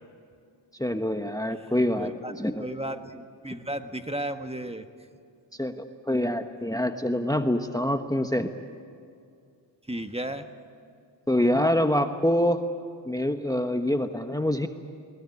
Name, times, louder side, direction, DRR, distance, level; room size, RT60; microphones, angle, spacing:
voice 1, 0.8-2.7 5.6-8.5 11.3-12.6 13.1-14.7, left 1 dB, 10° left, 7 dB, 1.2 m, -25 dB
voice 2, 2.0-2.3 2.6-4.9 9.9-10.5, right 1 dB, 15° right, 7 dB, 1.5 m, -34 dB
21.0 x 20.5 x 9.9 m, 2.3 s
cardioid pair, 55°, 44 cm